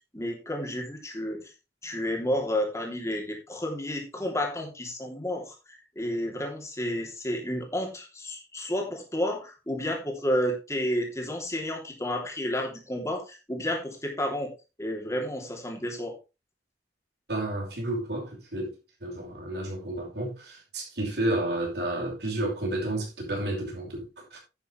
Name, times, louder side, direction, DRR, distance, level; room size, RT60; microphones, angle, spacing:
voice 1, 0.1-1.5 1.8-5.5 5.9-14.5 14.8-16.1, left 1 dB, 15° left, 3.1 m, -31 dB
voice 2, 17.3-18.7 19.0-24.4, right 1 dB, 70° right, 5.5 m, -31 dB
10.5 x 9.4 x 3.3 m
head